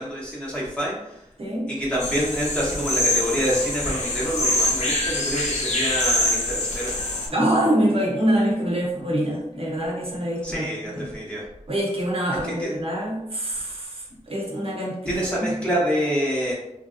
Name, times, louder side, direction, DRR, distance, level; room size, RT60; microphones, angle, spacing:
voice 1, 0.0-1.2 1.7-6.9 10.4-11.4 12.6-12.7 15.1-16.5, equal, 10° left, -6 dB, 1.0 m, -27 dB
voice 2, 1.4-1.7 7.3-11.1 11.7-15.6, right 1 dB, 50° right, -3 dB, 0.8 m, -25 dB
sound 1, 2.0-7.3, left 1 dB, 65° left, 0.8 m, -24 dB
2.9 x 2.7 x 2.5 m, 0.87 s
wide cardioid pair, 95°, 13 cm